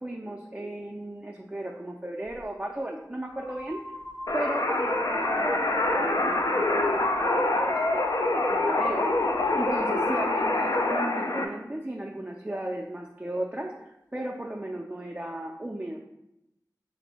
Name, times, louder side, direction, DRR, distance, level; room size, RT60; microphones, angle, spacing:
voice 1, 0.0-3.8 4.3-8.0 8.3-16.0, right 1 dB, 20° right, 1 dB, 0.4 m, -35 dB
sound 1, 2.3-2.4 3.2-10.9, right 1 dB, 35° left, 0.8 m, -42 dB
sound 2, 4.3-11.5, left 2 dB, 65° left, 0.4 m, -25 dB
3.1 x 2.6 x 4.2 m, 0.87 s
wide cardioid pair, 45°, 7 cm